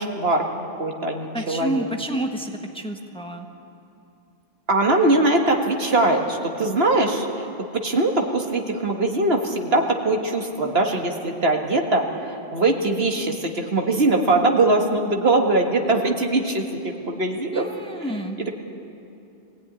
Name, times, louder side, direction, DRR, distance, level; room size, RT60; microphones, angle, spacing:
voice 1, 0.0-1.9 4.7-7.5 7.7-17.7 18.4-18.6, right 2 dB, 75° right, 2 dB, 2.0 m, -21 dB
voice 2, 1.3-3.5 17.5-18.4, right 1 dB, 5° left, 3 dB, 1.3 m, -29 dB
23.0 x 16.5 x 9.7 m, 2.8 s
omnidirectional pair, 1.0 m